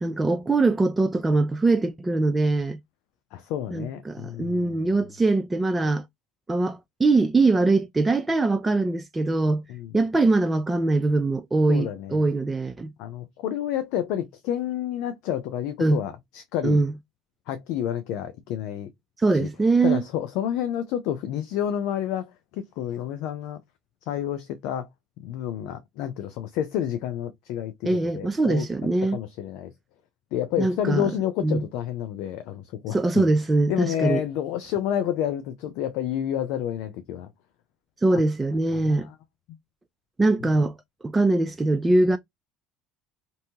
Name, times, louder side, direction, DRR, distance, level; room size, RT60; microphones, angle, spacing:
voice 1, 0.0-2.8 3.7-6.0 6.5-9.6 9.9-12.9 15.8-16.0 16.6-16.9 19.2-20.0 27.8-29.2 30.6-31.1 31.4-31.6 32.9-34.2 38.0-39.1 40.2-40.8 41.0-42.2, right 2 dB, 15° right, 0.3 m, -22 dB
voice 2, 3.3-4.9 9.7-9.9 11.7-12.3 13.0-16.8 17.5-18.9 19.3-19.5 19.8-23.6 24.1-24.9 25.2-28.7 29.0-29.7 30.3-33.3 33.7-37.3 38.1-38.2 38.7-39.1, left 10 dB, 70° left, 0.4 m, -29 dB
2.7 x 2.3 x 2.7 m
hypercardioid pair, 80°, 0 cm